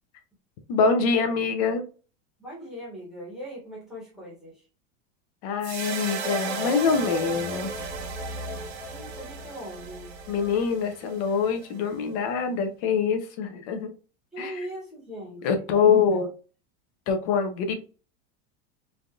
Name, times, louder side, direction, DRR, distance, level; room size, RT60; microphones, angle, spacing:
voice 1, 0.7-1.8 5.4-7.7 10.3-13.9 14.4-14.7 15.4-16.3 17.1-17.8, left 5 dB, 35° left, 0.5 m, -24 dB
voice 2, 2.4-4.6 8.9-10.1 14.3-15.8 16.1-16.2, equal, ahead, 1.0 m, -40 dB
sound 1, 5.6-12.0, right 3 dB, 85° right, 1.1 m, -35 dB
3.3 x 2.5 x 2.2 m
supercardioid pair, 180°, 32 cm